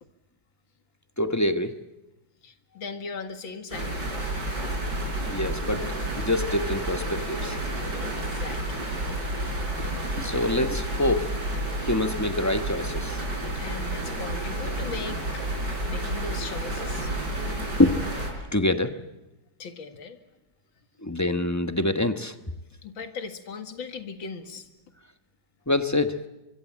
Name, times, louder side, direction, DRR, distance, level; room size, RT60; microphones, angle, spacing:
voice 1, 1.2-1.8 5.3-7.6 10.2-11.4 11.8-13.2 17.8-18.0 18.5-18.9 21.0-22.3 25.7-26.2, left 1 dB, 10° left, 8 dB, 0.9 m, -25 dB
voice 2, 2.4-3.9 8.0-8.9 9.6-9.7 13.5-15.4 15.8-17.1 19.6-20.2 22.8-24.7, left 5 dB, 75° left, 7 dB, 2.6 m, -38 dB
sound 1, 3.7-18.3, right 1 dB, 55° right, 5.6 m, -30 dB
24.5 x 24.0 x 7.5 m, 0.99 s
omnidirectional pair, 2.2 m